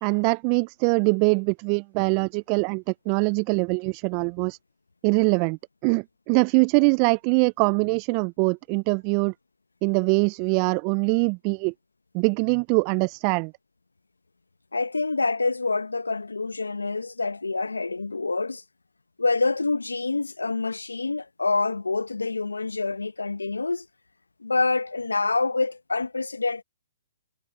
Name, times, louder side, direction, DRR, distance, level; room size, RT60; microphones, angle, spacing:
voice 1, 0.0-4.6 5.0-9.3 9.8-11.7 12.1-13.5, right 35 dB, 30° right, 0.5 m, -23 dB
voice 2, 14.7-18.6 19.2-23.9 24.4-26.6, left 3 dB, 85° left, 1.1 m, -26 dB
figure-of-eight pair, 130°, 0 cm